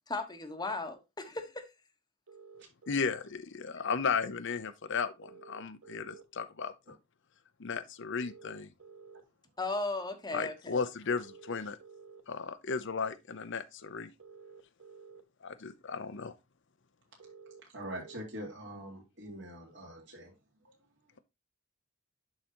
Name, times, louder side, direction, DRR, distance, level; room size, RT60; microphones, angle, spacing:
voice 1, 0.1-1.6 9.6-10.8, left 2 dB, 20° left, 1.1 m, -36 dB
sound 1, 2.3-3.2 5.2-6.2 8.2-9.2 11.2-12.2 14.2-15.2 17.2-18.2, right 5 dB, 90° right, 1.2 m, -52 dB
voice 2, 2.9-6.9 7.6-8.7 10.3-11.8 12.3-14.1 15.4-16.3, left 5 dB, 60° left, 0.7 m, -35 dB
voice 3, 17.7-20.3 20.6-20.8, right 1 dB, 60° right, 3.6 m, -43 dB
11.5 x 4.0 x 2.9 m
head